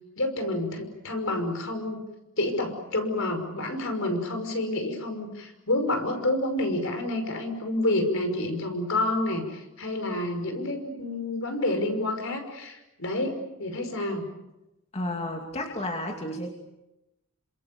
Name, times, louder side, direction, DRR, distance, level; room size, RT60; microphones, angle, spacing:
voice 1, 0.2-2.0 2.4-14.3, left 1 dB, 65° left, 6 dB, 5.7 m, -29 dB
voice 2, 14.9-16.5, left 1 dB, 30° left, 2 dB, 2.6 m, -32 dB
29.0 x 26.5 x 7.1 m, 0.95 s
head